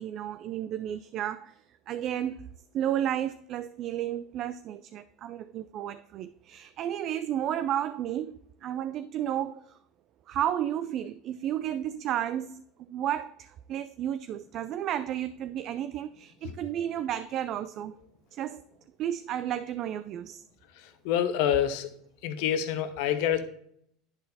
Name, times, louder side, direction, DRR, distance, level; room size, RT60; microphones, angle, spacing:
voice 1, 0.0-1.6 1.9-2.5 2.7-9.8 10.3-17.9 18.3-18.6 19.0-20.4, right 10 dB, 50° right, 0.3 m, -32 dB
voice 2, 21.0-21.9 22.2-23.4, left 10 dB, 70° left, 0.9 m, -26 dB
10.5 x 4.3 x 4.1 m
supercardioid pair, 105°, 0 cm